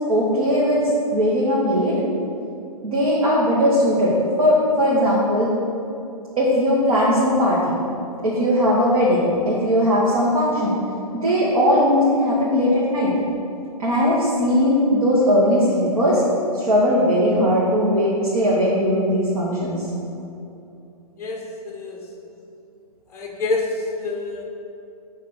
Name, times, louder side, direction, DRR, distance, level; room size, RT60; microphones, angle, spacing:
voice 1, 0.1-0.8 1.1-1.9 2.8-5.5 6.4-7.8 8.2-10.8 11.1-13.1 13.8-16.2 16.5-19.8, equal, 65° right, -5 dB, 1.5 m, -19 dB
voice 2, 21.2-22.0 23.1-24.4, left 3 dB, 15° left, -1 dB, 0.8 m, -27 dB
7.6 x 3.1 x 5.6 m, 2.7 s
figure-of-eight pair, 125°, 20 cm